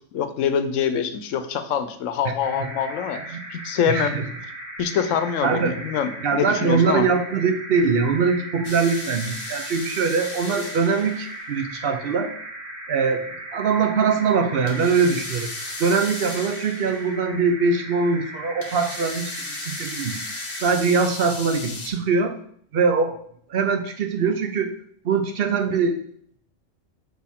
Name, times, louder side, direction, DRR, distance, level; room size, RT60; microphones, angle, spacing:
voice 1, 0.1-4.2 4.8-7.1, left 8 dB, 90° left, 10 dB, 1.0 m, -25 dB
sound 1, 2.4-20.6, right 1 dB, 35° right, 1.5 m, -37 dB
voice 2, 3.9-4.3 5.4-5.7 6.2-12.3 12.9-13.3 13.5-15.5 15.8-20.2 20.6-22.4 22.7-23.2 23.5-24.7 25.0-26.0, right 5 dB, 55° right, 7 dB, 0.8 m, -22 dB
sound 2, 8.6-11.5 14.7-17.1 18.6-21.9, left 3 dB, 35° left, 0.9 m, -36 dB
6.2 x 4.5 x 3.6 m, 0.63 s
omnidirectional pair, 1.3 m